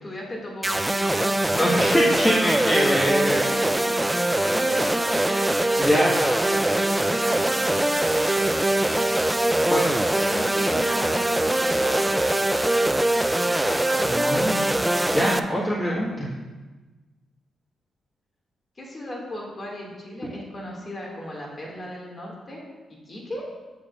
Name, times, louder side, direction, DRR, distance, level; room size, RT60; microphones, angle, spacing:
voice 1, 0.0-1.4 4.5-5.6 6.0-7.8 10.2-12.3 18.8-22.6 23.1-23.5, left 1 dB, 40° left, -2 dB, 2.4 m, -36 dB
sound 1, 0.6-15.4, right 1 dB, 10° right, 0.4 m, -22 dB
voice 2, 1.5-3.4 5.8-6.1 9.7-9.8 14.0-14.7 15.1-16.3, equal, 25° left, -5 dB, 1.7 m, -23 dB
8.4 x 7.6 x 2.6 m, 1.2 s
supercardioid pair, 50°, 0 cm